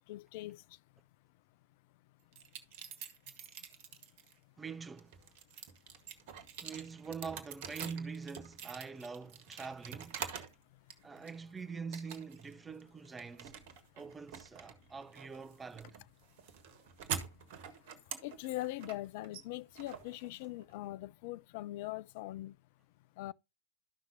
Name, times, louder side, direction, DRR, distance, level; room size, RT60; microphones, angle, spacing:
voice 1, 0.1-0.6 18.2-22.5 23.2-23.3, left 16 dB, 50° left, 0.5 m, -41 dB
sound 1, 2.3-4.3 4.8-10.6 10.9-11.5 11.9-12.5 12.8-20.7, right 8 dB, 50° right, 1.5 m, -46 dB
voice 2, 4.6-5.3 6.6-10.2 11.0-13.5 13.9-16.0, right 5 dB, 15° right, 0.8 m, -44 dB
13.0 x 5.8 x 2.7 m
figure-of-eight pair, 100°, 0 cm